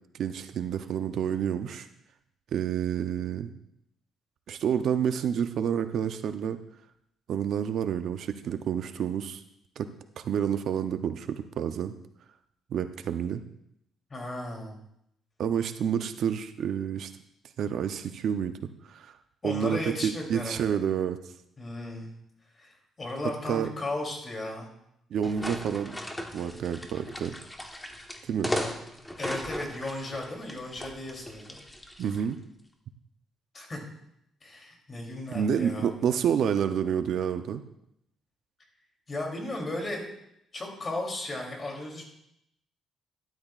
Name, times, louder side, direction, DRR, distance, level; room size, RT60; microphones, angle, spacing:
voice 1, 0.1-1.9 2.5-3.5 4.5-6.6 7.3-9.4 9.8-9.9 10.2-11.9 12.7-13.4 15.4-17.1 17.6-19.1 19.4-21.2 23.5-23.7 25.1-26.0 26.3-27.4 28.2-28.5 32.0-32.4 35.3-37.6, right 8 dB, 65° right, 9 dB, 0.6 m, -29 dB
voice 2, 14.1-14.8 19.4-20.8 21.6-22.1 22.6-24.7 29.2-31.6 33.5-33.8 34.4-36.2 39.1-40.0 40.5-42.0, left 2 dB, 30° left, 1 dB, 3.0 m, -35 dB
sound 1, 25.2-32.3, left 1 dB, 10° left, 1.2 m, -37 dB
12.5 x 12.0 x 2.4 m, 0.77 s
cardioid pair, 105°, 0 cm